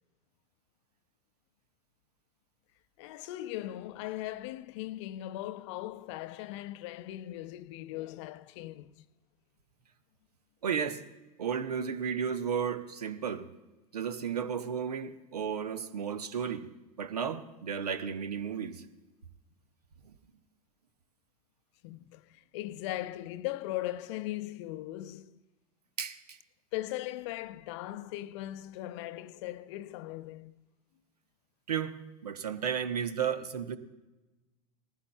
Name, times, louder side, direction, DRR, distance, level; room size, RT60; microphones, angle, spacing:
voice 1, 3.0-9.0 21.8-25.4 26.7-30.5, left 15 dB, 45° left, 0.5 m, -39 dB
voice 2, 10.6-11.0 11.4-13.5 13.9-16.7 17.0-18.8 20.0-20.1 26.0-26.4 31.7-31.9 32.2-33.8, right 7 dB, 75° right, 0.8 m, -33 dB
19.0 x 15.5 x 2.2 m
figure-of-eight pair, 85°, 20 cm